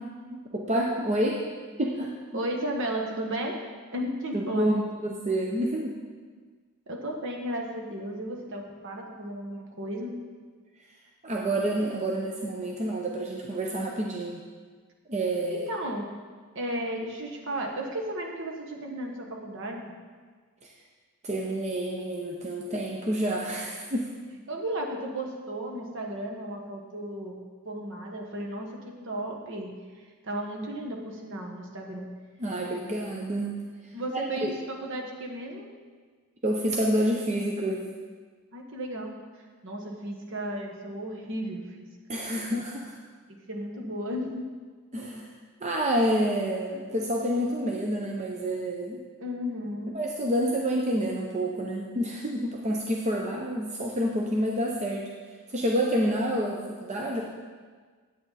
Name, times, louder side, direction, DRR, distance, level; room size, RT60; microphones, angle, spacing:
voice 1, 0.3-1.4 1.8-2.1 4.3-4.7 5.0-5.9 11.2-14.4 15.1-15.7 20.6-20.7 21.2-24.1 32.4-33.5 33.8-34.5 36.4-37.8 42.1-42.9 44.9-45.3 45.6-49.0 49.9-55.0 55.5-57.2, right 1 dB, 30° right, -1 dB, 0.7 m, -28 dB
voice 2, 2.3-3.6 3.9-4.8 6.9-10.2 15.5-16.1 16.5-19.9 24.5-27.4 27.6-32.1 33.9-35.7 38.5-41.8 43.3-44.5 49.2-50.0, right 1 dB, 55° right, 0 dB, 1.3 m, -34 dB
8.7 x 8.6 x 4.1 m, 1.5 s
head